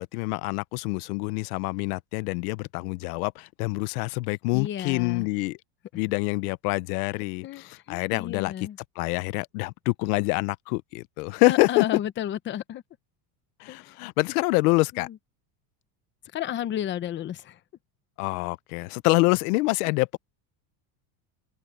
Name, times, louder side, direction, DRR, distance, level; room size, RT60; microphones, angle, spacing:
voice 1, 0.0-5.6 5.9-8.5 9.0-11.8 13.6-15.1 18.2-20.2, left 24 dB, 85° left, 0.8 m, -26 dB
voice 2, 4.5-5.3 7.4-8.8 11.5-12.8 13.7-14.0 14.9-15.2 16.3-17.6, left 11 dB, 25° left, 0.9 m, -32 dB
open air
cardioid pair, 165°, 44 cm